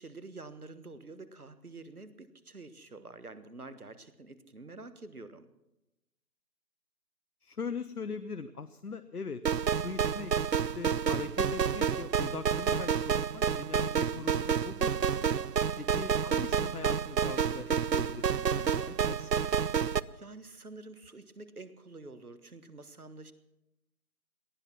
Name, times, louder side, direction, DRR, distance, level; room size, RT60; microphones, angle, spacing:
voice 1, 0.0-5.5 15.5-16.0 20.1-23.3, right 3 dB, 60° right, 12 dB, 1.5 m, -48 dB
voice 2, 7.4-9.4 9.7-10.3 10.7-15.3 15.8-19.5, left 5 dB, 65° left, 10 dB, 0.9 m, -41 dB
sound 1, 9.5-20.0, right 7 dB, 80° right, 0.7 m, -29 dB
18.5 x 12.5 x 6.0 m, 0.93 s
figure-of-eight pair, 175°, 49 cm